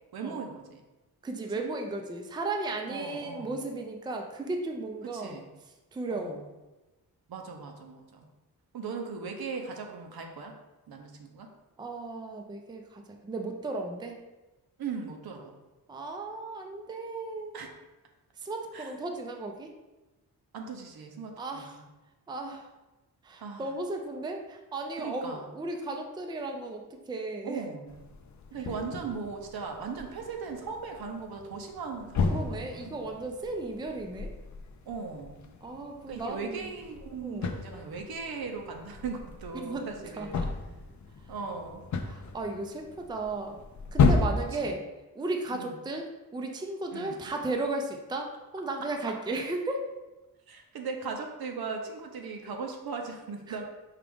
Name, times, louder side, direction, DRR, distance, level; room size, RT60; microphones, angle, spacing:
voice 1, 0.1-0.8 2.9-3.6 5.1-5.5 6.1-6.5 7.3-8.3 8.7-10.5 10.9-11.5 14.8-15.5 17.5-17.7 18.7-18.9 20.5-21.8 23.4-23.7 25.0-25.5 27.4-28.0 28.5-33.1 34.9-35.4 36.1-40.4 41.3-41.9 44.5-44.8 45.5-45.7 46.9-47.2 49.1-49.2 50.5-53.7, right 5 dB, 70° right, 3 dB, 0.7 m, -38 dB
voice 2, 1.2-5.3 5.9-6.4 11.8-14.2 15.9-17.6 18.4-19.7 21.4-21.8 22.3-22.7 23.2-27.6 32.3-34.3 35.6-36.6 37.2-37.6 39.5-39.9 40.2-40.5 42.1-43.6 43.9-44.8 45.2-46.1 46.3-49.9 53.5-53.6, right 2 dB, 10° right, 3 dB, 0.4 m, -35 dB
sound 1, 27.9-44.3, left 4 dB, 50° left, 0.5 m, -33 dB
4.6 x 2.5 x 3.5 m, 1.1 s
cardioid pair, 80°, 37 cm